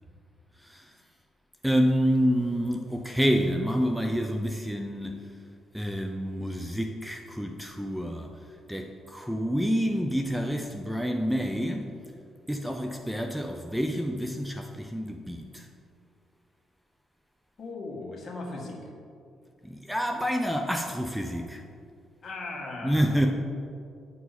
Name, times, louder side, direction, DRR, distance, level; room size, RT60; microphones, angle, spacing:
voice 1, 0.6-1.0 1.6-5.3 5.7-11.9 12.5-15.7 19.6-21.6 22.8-23.3, equal, 5° right, 4 dB, 0.5 m, -28 dB
voice 2, 17.6-18.9 22.2-23.3, left 2 dB, 45° left, -2 dB, 1.8 m, -38 dB
9.3 x 4.7 x 4.2 m, 2.4 s
cardioid pair, 90°, 0 cm